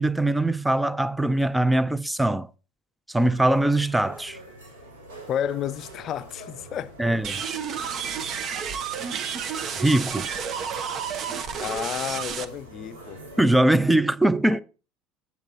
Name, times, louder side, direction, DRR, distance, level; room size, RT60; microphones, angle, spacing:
voice 1, 0.0-2.5 3.1-4.4 7.0-7.4 9.7-10.3 13.4-14.6, right 1 dB, 5° right, 0.5 m, -22 dB
sound 1, 3.2-13.6, right 1 dB, 80° right, 4.1 m, -45 dB
voice 2, 5.3-7.1 11.6-13.2, left 10 dB, 45° left, 0.5 m, -31 dB
sound 2, 7.2-12.5, right 7 dB, 45° right, 0.9 m, -31 dB
8.2 x 8.1 x 3.9 m
figure-of-eight pair, 70°, 0 cm